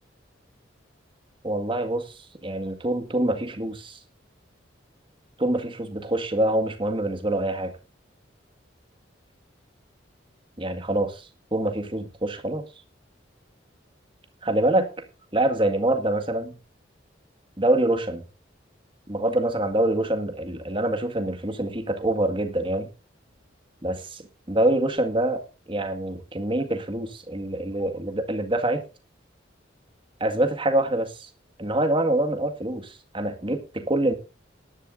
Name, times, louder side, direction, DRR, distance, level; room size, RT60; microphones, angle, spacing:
voice 1, 1.4-4.0 5.4-7.7 10.6-12.7 14.4-14.9 15.3-16.5 17.6-18.2 19.1-22.9 23.8-25.4 25.7-28.8 30.2-31.3 31.6-34.1, right 1 dB, 25° right, 6 dB, 1.8 m, -25 dB
19.5 x 11.0 x 2.6 m, 0.31 s
head